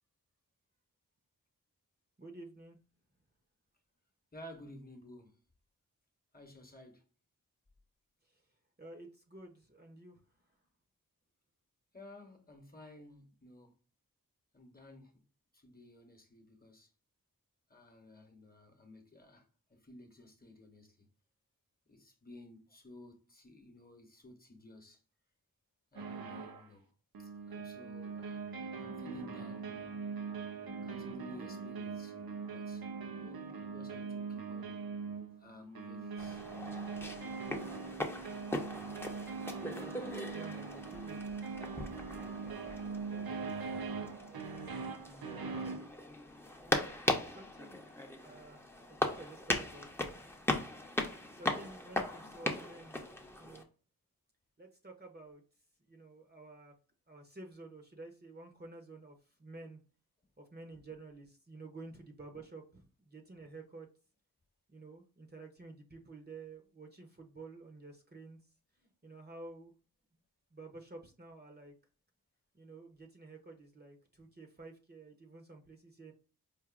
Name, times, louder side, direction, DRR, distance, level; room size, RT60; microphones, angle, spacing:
voice 1, 2.2-2.8 8.2-8.4 8.8-10.2 40.3-41.2 42.4-43.5 43.9-45.0 45.4-45.9 46.6-47.9 48.2-50.1 51.3-53.0 53.3-53.6 54.6-55.4 55.8-56.7 57.1-59.8 60.4-63.9 64.7-68.4 68.8-69.7 70.5-71.7 72.5-76.1, right 3 dB, 30° right, 0.8 m, -52 dB
voice 2, 4.3-5.4 6.3-7.0 11.9-13.8 14.5-15.1 15.5-16.9 17.7-19.4 19.7-21.1 21.9-25.0 25.9-26.9 27.2-28.4 28.8-29.9 30.8-32.8 33.1-34.8 35.3-36.4 37.7-38.0 40.0-40.1, left 1 dB, 25° left, 1.0 m, -54 dB
sound 1, 26.0-26.7 27.1-45.9, right 5 dB, 80° right, 0.6 m, -42 dB
sound 2, 36.2-53.6, left 1 dB, 5° left, 0.7 m, -39 dB
4.8 x 2.5 x 2.4 m
wide cardioid pair, 60°, 35 cm